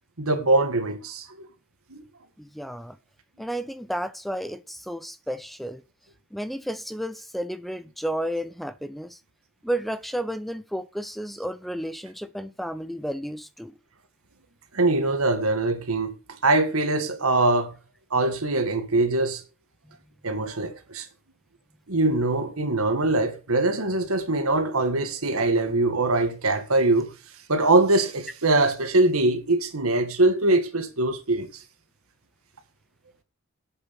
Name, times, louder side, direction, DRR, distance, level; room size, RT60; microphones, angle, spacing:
voice 1, 0.2-1.3 1.9-2.0 14.7-16.1 16.4-17.7 18.1-19.4 20.2-21.1 21.9-27.1 27.5-31.5, right 2 dB, 90° right, 1.8 m, -22 dB
voice 2, 2.4-3.0 3.4-5.8 6.3-9.2 9.6-13.7, equal, ahead, 0.5 m, -32 dB
8.2 x 6.8 x 5.8 m
head